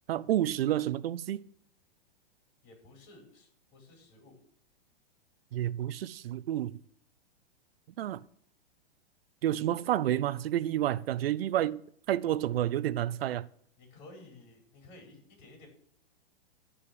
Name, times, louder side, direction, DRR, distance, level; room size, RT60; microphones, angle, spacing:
voice 1, 0.1-1.4 5.5-6.7 8.0-8.2 9.4-11.8 12.1-13.5, right 12 dB, 70° right, 0.6 m, -29 dB
voice 2, 2.6-4.4 13.8-15.7, left 2 dB, 45° left, 4.9 m, -54 dB
11.5 x 5.2 x 8.6 m
hypercardioid pair, 130°, 30 cm